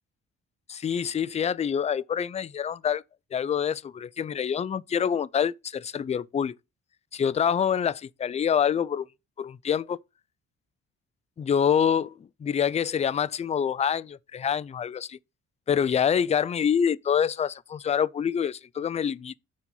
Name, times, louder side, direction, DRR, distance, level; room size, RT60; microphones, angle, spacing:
voice 1, 0.7-3.0 3.3-6.6 7.1-9.1 9.4-10.0 11.4-15.2 15.7-19.4, left 8 dB, 25° left, 0.3 m, -26 dB
6.8 x 4.7 x 5.4 m
cardioid pair, 90°, 30 cm